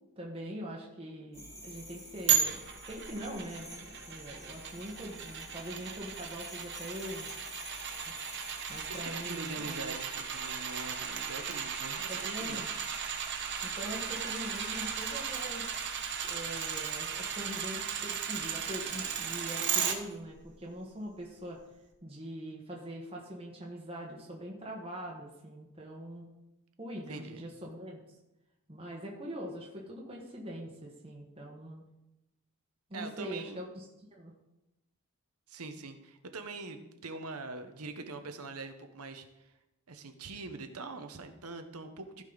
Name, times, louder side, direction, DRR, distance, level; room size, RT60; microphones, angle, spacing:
voice 1, 0.2-7.3 8.7-9.9 12.1-12.7 13.6-15.6 16.2-21.6 22.0-26.3 26.8-28.0 28.7-31.8 32.9-33.8 34.1-34.3, equal, 25° right, -2 dB, 1.3 m, -43 dB
sound 1, 1.3-20.2, equal, 15° left, 1.9 m, -51 dB
sound 2, 2.3-20.0 20.4-20.5, right 7 dB, 55° right, 1.2 m, -35 dB
voice 2, 9.0-12.6 27.1-27.4 32.9-33.6 35.5-39.5 39.9-42.2, right 3 dB, 80° right, 7 dB, 1.1 m, -43 dB
15.0 x 5.2 x 4.0 m, 0.94 s
head